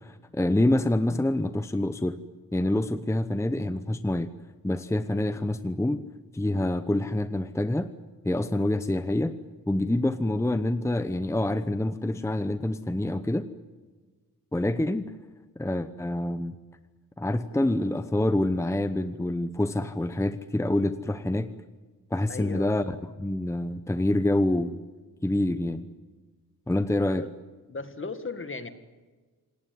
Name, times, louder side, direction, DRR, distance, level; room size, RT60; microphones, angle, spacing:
voice 1, 0.0-2.2 2.5-4.3 4.6-6.0 6.3-7.9 8.2-9.4 9.7-13.5 14.5-15.0 15.6-16.5 17.2-21.5 22.1-24.8 25.2-25.9 26.7-27.2, left 1 dB, 10° left, 11 dB, 0.9 m, -26 dB
voice 2, 22.3-22.9 27.1-27.3 27.7-28.7, left 3 dB, 35° left, 10 dB, 1.9 m, -36 dB
27.0 x 19.0 x 9.5 m, 1.4 s
wide cardioid pair, 140°, 36 cm